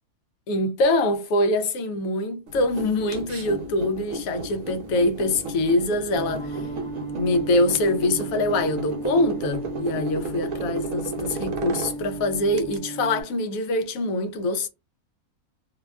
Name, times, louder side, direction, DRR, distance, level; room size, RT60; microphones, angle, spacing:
voice 1, 0.5-6.7 7.1-14.7, left 1 dB, 75° left, 1.0 m, -24 dB
sound 1, 2.5-12.8, right 2 dB, 70° right, 1.0 m, -34 dB
sound 2, 6.1-13.2, right 3 dB, 25° left, 0.7 m, -35 dB
2.7 x 2.1 x 2.3 m
omnidirectional pair, 1.6 m